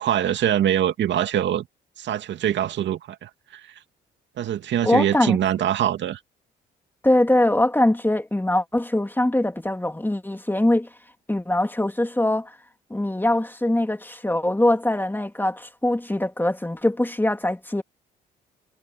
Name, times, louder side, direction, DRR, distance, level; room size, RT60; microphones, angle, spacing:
voice 1, 0.0-1.7 2.0-3.7 4.4-6.2, right 10 dB, 65° right, 2.4 m, -23 dB
voice 2, 4.8-5.4 7.0-10.9 11.3-12.6 12.9-17.8, left 1 dB, 10° left, 2.8 m, -22 dB
hypercardioid pair, 55°, 20 cm